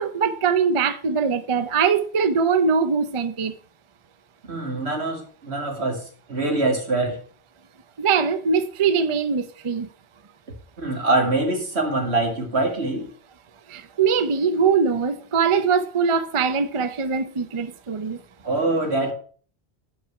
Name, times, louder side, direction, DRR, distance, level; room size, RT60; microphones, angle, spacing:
voice 1, 0.0-3.5 8.0-9.9 13.7-18.2, right 5 dB, 35° right, 0.5 m, -22 dB
voice 2, 4.5-6.0 6.3-7.2 10.8-13.1 18.4-19.1, right 2 dB, 75° right, 2.3 m, -24 dB
8.6 x 4.8 x 5.8 m
omnidirectional pair, 1.1 m